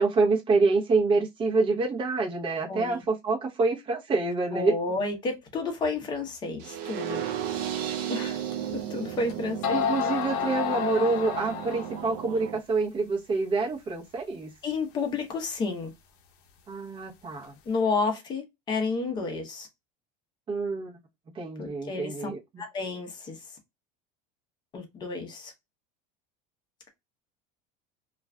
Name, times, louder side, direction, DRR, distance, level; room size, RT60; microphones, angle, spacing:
voice 1, 0.0-4.7 9.7-14.5 16.7-17.6 20.5-21.0 21.3-22.4, right 3 dB, 25° right, 0.8 m, -26 dB
voice 2, 2.7-3.0 4.5-7.2 8.1-8.4 8.7-9.6 14.6-15.9 17.7-19.7 21.6-22.3 22.6-23.4 24.7-25.5, left 3 dB, 20° left, 0.7 m, -31 dB
sound 1, 6.6-12.6, right 9 dB, 50° right, 0.4 m, -34 dB
sound 2, 8.5-8.6 9.3-9.4 9.6-12.1, left 8 dB, 60° left, 0.7 m, -29 dB
2.4 x 2.3 x 3.1 m
cardioid pair, 160°, 20 cm